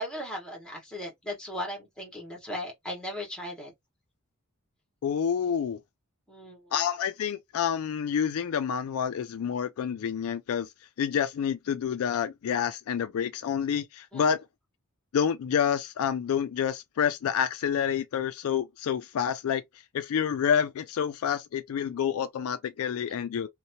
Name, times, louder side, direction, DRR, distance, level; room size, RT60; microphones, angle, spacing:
voice 1, 0.0-3.7 6.3-6.8 14.1-14.2 23.1-23.2, equal, 5° left, 1.2 m, -37 dB
voice 2, 5.0-5.8 6.7-10.7 11.0-14.5 15.1-19.6 19.9-23.5, left 8 dB, 65° left, 0.3 m, -28 dB
2.8 x 2.2 x 2.7 m
head